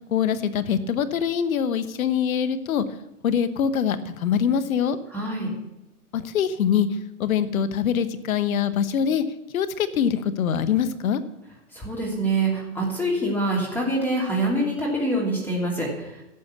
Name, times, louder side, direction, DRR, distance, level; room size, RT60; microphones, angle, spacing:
voice 1, 0.1-2.8 3.2-5.0 6.1-6.9 7.2-9.2 9.5-11.2, left 8 dB, 65° left, 11 dB, 1.1 m, -23 dB
voice 2, 5.1-5.5 11.7-16.2, right 1 dB, 5° left, -4 dB, 2.8 m, -25 dB
12.0 x 7.0 x 7.2 m, 0.91 s
hypercardioid pair, 125°, 45 cm